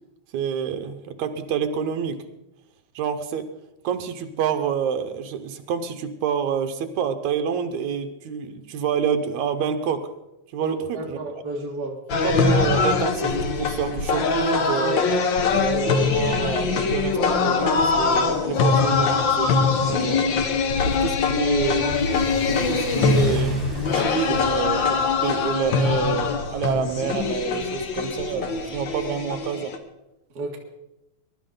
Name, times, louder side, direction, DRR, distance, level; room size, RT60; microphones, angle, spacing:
voice 1, 0.3-2.2 3.0-3.5 3.8-10.1 10.5-11.2 12.2-15.1 15.4-20.4 20.8-23.6 23.9-29.7, right 7 dB, 75° right, 8 dB, 2.3 m, -28 dB
voice 2, 10.6-12.0 30.4-30.6, right 1 dB, 35° right, 0 dB, 2.0 m, -32 dB
sound 1, 12.1-29.8, left 5 dB, 60° left, 1.3 m, -22 dB
Car / Accelerating revving vroom, 18.7-28.1, right 1 dB, ahead, 5.6 m, -37 dB
21.5 x 12.0 x 3.9 m, 0.91 s
omnidirectional pair, 3.4 m